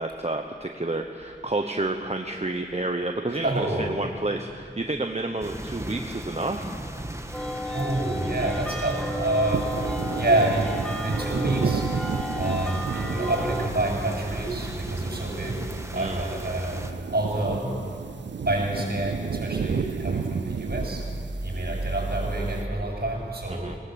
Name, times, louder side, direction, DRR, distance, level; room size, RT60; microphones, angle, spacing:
voice 1, 0.0-6.7 15.9-16.3 23.5-23.8, right 2 dB, 35° right, 4 dB, 1.1 m, -30 dB
voice 2, 3.3-3.9 7.7-9.7 10.1-11.9 12.4-15.7 15.9-17.8 18.5-21.1 21.4-23.8, right 1 dB, 55° right, -1 dB, 7.4 m, -27 dB
sound 1, 5.4-16.9, right 1 dB, 15° right, 1.6 m, -36 dB
sound 2, 7.3-13.7, equal, 5° left, 1.5 m, -33 dB
sound 3, 9.5-22.6, right 6 dB, 70° right, 0.5 m, -33 dB
19.0 x 18.5 x 8.2 m, 2.2 s
wide cardioid pair, 50°, 19 cm